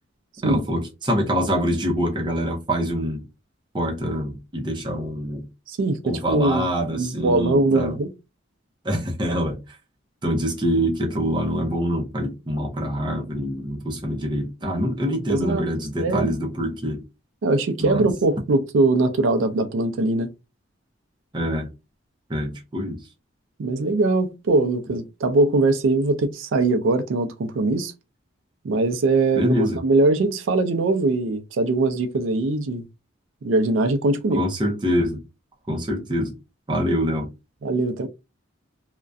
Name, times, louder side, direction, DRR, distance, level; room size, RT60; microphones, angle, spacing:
voice 1, 0.4-3.2 3.7-5.4 6.0-8.0 8.8-9.6 10.2-17.0 17.8-18.0 21.3-21.7 22.3-23.0 29.4-29.8 34.3-35.2 35.7-36.4 36.7-37.3, equal, 25° right, 0.5 m, -25 dB
voice 2, 5.7-8.1 15.3-15.7 16.0-16.3 17.4-20.3 23.6-27.9 28.6-32.9 33.4-34.4 37.6-38.1, right 2 dB, 80° right, 0.4 m, -21 dB
2.3 x 2.1 x 2.5 m
head